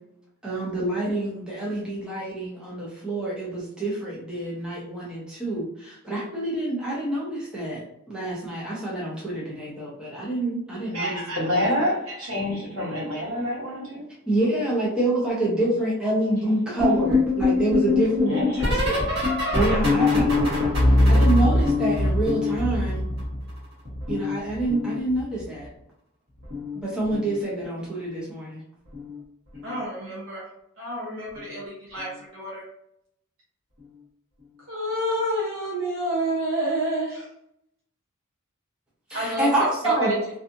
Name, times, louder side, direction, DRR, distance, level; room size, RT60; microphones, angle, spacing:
voice 1, 0.4-11.7 14.3-18.4 18.7-19.0 19.5-20.5 21.1-23.0 24.1-25.7 26.7-28.6 39.1-40.2, right 1 dB, 5° right, -7 dB, 0.6 m, -27 dB
voice 2, 10.9-14.0 18.3-19.1, left 1 dB, 90° right, -5 dB, 1.1 m, -27 dB
sound 1, 16.8-23.6 23.8-25.4 26.4-26.8 27.0-27.4 28.9-29.2 29.5-29.8 31.4-31.5, left 2 dB, 50° right, 1.2 m, -23 dB
voice 3, 29.6-30.4 30.8-32.6 34.7-37.3 39.1-39.6 40.0-40.1, right 1 dB, 65° right, -5 dB, 0.7 m, -29 dB
2.5 x 2.4 x 2.5 m, 0.77 s
head